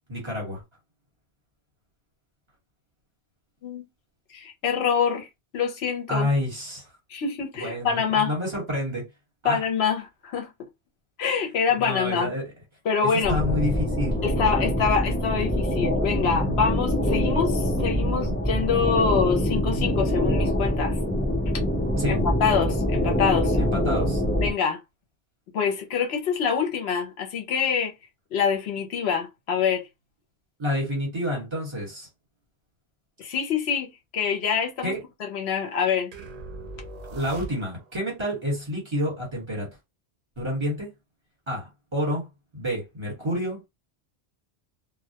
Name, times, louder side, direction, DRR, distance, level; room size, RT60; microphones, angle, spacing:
voice 1, 0.1-0.6 6.1-6.9 7.6-9.1 9.4-9.6 11.8-12.5 13.0-14.2 22.0-22.2 23.6-24.2 30.6-32.1 34.8-35.0 37.1-39.7 40.4-40.9 41.5-42.3 42.5-43.7, left 1 dB, 25° right, 1.2 m, -29 dB
voice 2, 4.3-5.3 5.5-6.3 7.1-8.3 9.4-10.7 11.2-12.3 12.9-13.4 14.2-21.0 22.1-23.6 24.4-24.8 25.5-27.9 28.3-29.9 33.2-33.9 34.1-34.9 35.2-36.1, left 6 dB, 70° left, 0.9 m, -25 dB
sound 1, 13.2-24.5, equal, 10° left, 0.7 m, -24 dB
sound 2, 36.1-38.0, right 2 dB, 50° right, 0.5 m, -40 dB
2.1 x 2.1 x 2.8 m
omnidirectional pair, 1.1 m